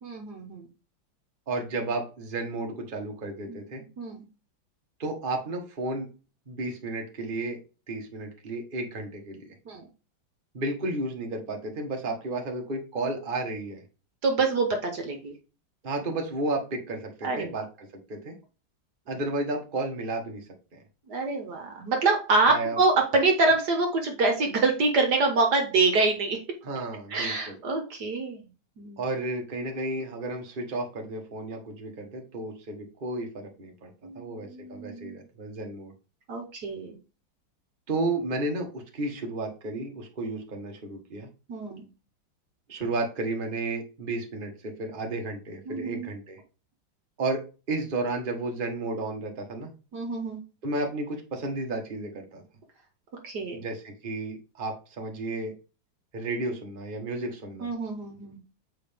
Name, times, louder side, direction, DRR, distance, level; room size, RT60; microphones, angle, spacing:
voice 1, 0.0-0.7 3.5-3.6 4.0-4.2 9.7-9.8 14.2-15.3 17.2-17.5 21.1-26.4 27.1-28.4 28.8-29.0 34.0-35.2 36.3-37.0 41.5-41.9 45.7-46.1 49.9-50.4 53.2-53.6 57.6-58.4, right 3 dB, 60° right, 3 dB, 1.7 m, -26 dB
voice 2, 1.5-3.8 5.0-6.1 6.5-7.6 7.9-9.4 10.5-13.8 15.8-18.3 19.1-20.4 20.7-20.8 22.5-22.8 26.6-27.6 29.0-35.9 37.9-41.3 42.7-46.4 47.2-49.7 50.6-52.4 53.5-55.5 56.1-57.7, right 2 dB, 30° right, 2 dB, 1.5 m, -32 dB
7.7 x 5.0 x 3.5 m, 0.33 s
omnidirectional pair, 2.1 m